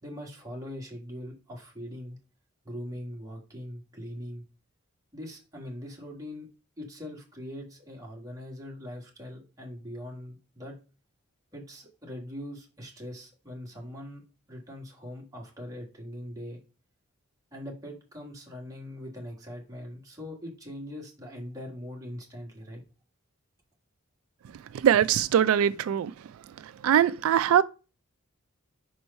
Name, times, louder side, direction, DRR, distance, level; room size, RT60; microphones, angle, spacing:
voice 1, 0.0-2.2 2.6-4.4 5.1-6.5 6.8-10.8 11.5-14.2 14.5-16.6 17.5-22.8, left 1 dB, 15° right, 1.7 m, -41 dB
voice 2, 24.7-26.1 26.8-27.6, right 9 dB, 80° right, 0.3 m, -22 dB
5.4 x 4.6 x 5.3 m
head